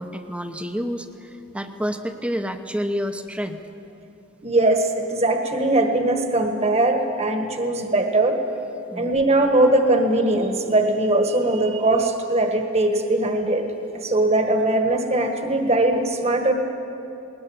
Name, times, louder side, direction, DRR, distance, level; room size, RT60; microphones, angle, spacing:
voice 1, 0.0-3.6 8.9-9.1, equal, 5° right, 7 dB, 0.9 m, -29 dB
voice 2, 4.4-8.4 8.9-13.6 13.9-16.5, right 2 dB, 30° right, 4 dB, 1.5 m, -20 dB
20.5 x 19.5 x 8.8 m, 2.9 s
head